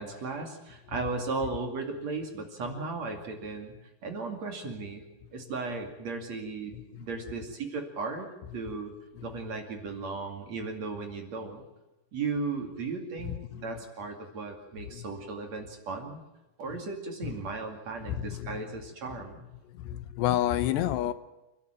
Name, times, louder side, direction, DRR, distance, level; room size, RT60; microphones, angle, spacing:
voice 1, 0.0-3.7 4.0-5.0 5.3-8.9 9.2-11.6 12.1-16.2 16.6-19.5, right 3 dB, 45° right, 3.2 m, -36 dB
voice 2, 6.7-7.1 9.1-9.3 13.2-13.6 14.9-15.1 17.2-17.4 18.1-18.6 19.7-21.1, left 12 dB, 80° left, 3.1 m, -30 dB
29.5 x 12.0 x 9.1 m
omnidirectional pair, 4.9 m